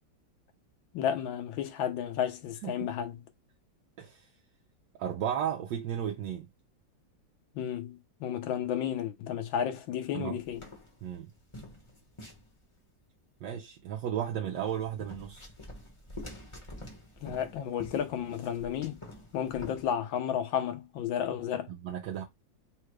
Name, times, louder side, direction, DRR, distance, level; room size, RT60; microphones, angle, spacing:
voice 1, 0.9-3.2 7.6-10.6 17.2-19.0 19.3-21.7, left 9 dB, 90° left, 1.5 m, -32 dB
voice 2, 4.0-4.3 5.0-6.5 10.1-10.4 11.0-11.3 13.4-15.5 21.7-22.2, right 9 dB, 75° right, 1.3 m, -34 dB
sound 1, 10.4-12.9 14.6-19.9, left 1 dB, 20° left, 1.0 m, -47 dB
4.0 x 2.3 x 4.7 m
omnidirectional pair, 2.0 m